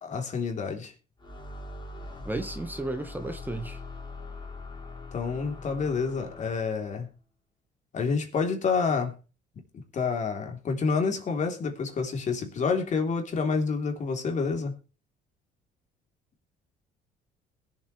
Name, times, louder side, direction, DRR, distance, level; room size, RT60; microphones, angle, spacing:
voice 1, 0.0-0.9 5.1-7.1 7.9-9.1 9.7-14.7, left 5 dB, 45° left, 3.4 m, -28 dB
sound 1, 1.2-6.9, left 3 dB, 25° left, 4.7 m, -42 dB
voice 2, 2.2-3.8, right 2 dB, 10° right, 1.4 m, -33 dB
21.5 x 7.5 x 3.3 m
cardioid pair, 110°, 17 cm